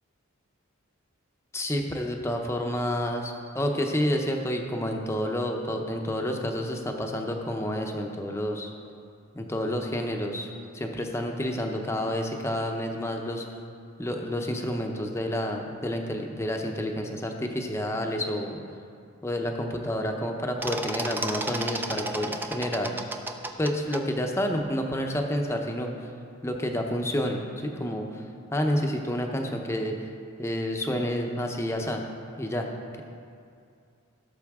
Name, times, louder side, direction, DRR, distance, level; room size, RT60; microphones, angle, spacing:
voice 1, 1.5-8.7 9.3-13.4 14.0-18.6 19.2-23.0 23.6-25.9 26.4-28.2 28.5-29.9 30.4-32.0 32.4-32.7, equal, 15° left, 2 dB, 0.7 m, -29 dB
sound 1, 20.6-24.0, right 2 dB, 10° right, 0.4 m, -32 dB
16.5 x 6.8 x 3.6 m, 2.4 s
head